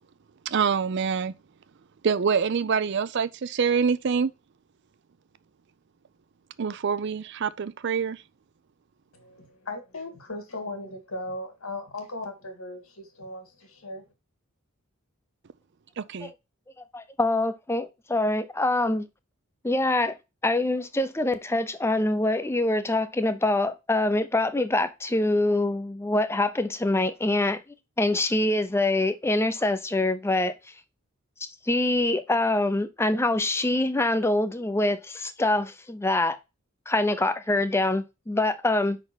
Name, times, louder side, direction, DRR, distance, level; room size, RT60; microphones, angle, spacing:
voice 1, 0.5-1.3 2.0-4.3 6.6-8.2 16.0-16.3, right 6 dB, 55° right, 0.4 m, -25 dB
voice 2, 9.1-14.1, left 2 dB, 75° left, 2.1 m, -37 dB
voice 3, 16.9-19.1 19.6-20.2 20.4-27.6 28.0-30.6 31.7-36.4 36.9-39.0, left 2 dB, 10° left, 0.5 m, -25 dB
5.5 x 4.1 x 6.1 m
head